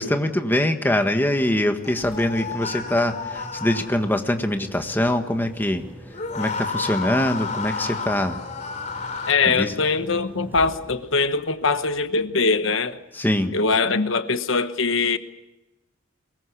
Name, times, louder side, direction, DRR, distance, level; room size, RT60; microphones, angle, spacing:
voice 1, 0.0-5.8 6.3-8.4 9.4-9.7 13.1-13.5, left 1 dB, 10° left, 1.6 m, -23 dB
sound 1, 1.8-4.2 6.1-9.3, left 4 dB, 35° left, 3.3 m, -31 dB
Engine, 1.8-12.8, right 1 dB, 10° right, 6.9 m, -45 dB
voice 2, 9.3-13.0 13.5-15.2, left 4 dB, 65° left, 1.1 m, -22 dB
23.5 x 21.5 x 8.3 m
head